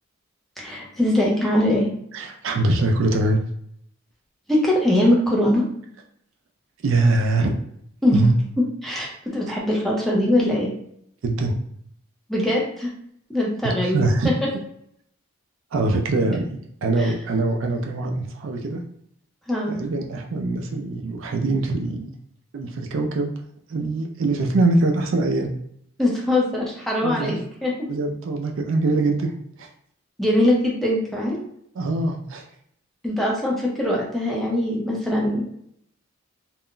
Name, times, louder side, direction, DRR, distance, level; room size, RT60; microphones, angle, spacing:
voice 1, 0.6-1.9 4.5-5.6 8.0-8.3 8.8-10.7 12.3-12.9 13.3-14.1 17.0-17.1 19.5-19.7 26.0-27.7 30.2-31.4 33.0-35.4, left 1 dB, ahead, -4 dB, 0.6 m, -22 dB
voice 2, 2.1-3.4 6.8-7.5 8.1-8.3 11.2-11.5 13.6-14.3 15.7-16.4 16.8-18.8 19.7-22.1 22.5-23.3 23.7-25.5 27.0-27.4 27.9-29.3 29.6-29.7 31.8-32.4, right 2 dB, 65° right, 3 dB, 0.4 m, -23 dB
2.4 x 2.1 x 3.7 m, 0.70 s
head